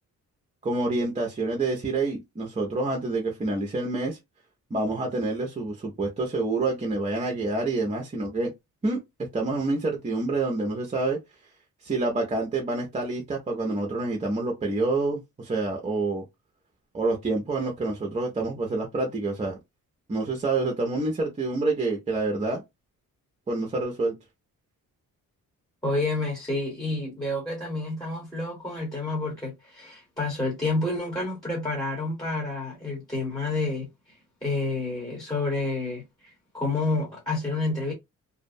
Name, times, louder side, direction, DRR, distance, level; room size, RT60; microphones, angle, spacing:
voice 1, 0.6-4.2 4.7-8.5 8.8-9.0 9.3-11.2 11.8-16.2 16.9-19.6 20.1-22.6 23.5-24.1, right 3 dB, 20° right, 0.5 m, -27 dB
voice 2, 25.8-33.9 34.4-37.9, left 2 dB, 10° left, 1.0 m, -29 dB
2.5 x 2.1 x 2.6 m
wide cardioid pair, 155°, 35 cm